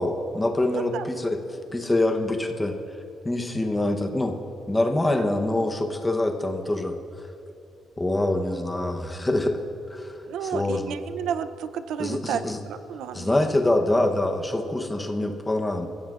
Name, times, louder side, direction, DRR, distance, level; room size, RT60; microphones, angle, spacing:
voice 1, 0.0-1.4 1.7-2.8 3.2-4.4 4.7-7.0 8.0-9.6 9.9-10.9 12.0-12.6 13.1-15.9, left 1 dB, 10° left, 4 dB, 0.9 m, -25 dB
voice 2, 0.7-1.0 5.2-5.3 10.2-13.4, right 8 dB, 85° right, 12 dB, 0.5 m, -32 dB
30.0 x 15.5 x 2.5 m, 2.7 s
cardioid pair, 175°, 0 cm